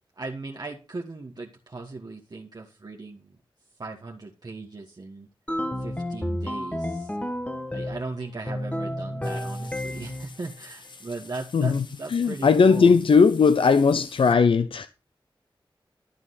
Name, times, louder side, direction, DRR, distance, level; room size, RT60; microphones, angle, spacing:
voice 1, 0.1-3.4 3.8-5.3 5.8-7.2 7.7-13.0, right 3 dB, 50° right, 1.5 m, -38 dB
sound 1, 5.5-8.1 8.5-10.3, left 1 dB, 15° left, 1.2 m, -31 dB
sound 2, 9.2-14.3, left 3 dB, 60° left, 1.6 m, -48 dB
voice 2, 11.5-14.9, left 5 dB, 80° left, 0.6 m, -19 dB
13.0 x 7.2 x 4.1 m
wide cardioid pair, 80°, 9 cm